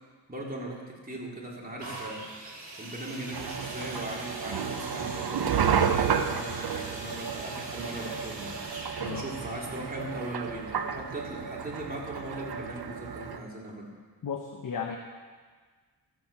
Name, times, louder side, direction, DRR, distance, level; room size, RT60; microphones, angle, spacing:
voice 1, 0.3-8.8 9.1-13.9, right 1 dB, 20° right, -3 dB, 3.5 m, -39 dB
sound 1, 1.8-11.5 12.2-12.3, right 2 dB, 40° right, 3.2 m, -42 dB
sound 2, 3.3-13.4, right 7 dB, 60° right, 1.0 m, -32 dB
voice 2, 14.2-15.0, left 6 dB, 45° left, 3 dB, 1.1 m, -34 dB
14.0 x 7.8 x 7.2 m, 1.5 s
cardioid pair, 80°, 43 cm